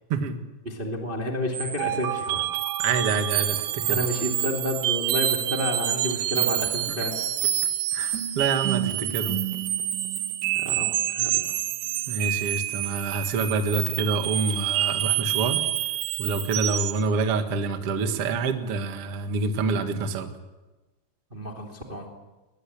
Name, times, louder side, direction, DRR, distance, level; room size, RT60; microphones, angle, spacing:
voice 1, 0.6-2.4 3.9-7.2 10.5-11.5 21.3-22.1, left 1 dB, 20° right, 1 dB, 1.5 m, -30 dB
sound 1, 1.5-17.0, right 13 dB, 70° right, 2.9 m, -27 dB
voice 2, 2.8-4.0 7.9-9.4 12.1-15.6 16.2-20.3, right 4 dB, 90° right, 6 dB, 1.3 m, -27 dB
22.0 x 21.0 x 8.7 m, 1.1 s
omnidirectional pair, 5.7 m